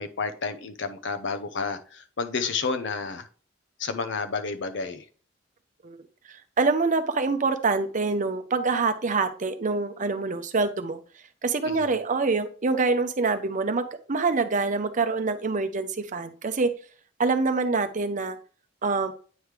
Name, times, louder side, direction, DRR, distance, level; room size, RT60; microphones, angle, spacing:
voice 1, 0.0-3.3 3.8-5.0 11.8-11.9, left 4 dB, 70° left, 0.7 m, -30 dB
voice 2, 6.3-11.0 11.4-16.7 17.2-18.4 18.8-19.1, right 4 dB, 45° right, 0.7 m, -25 dB
9.2 x 3.2 x 3.3 m
head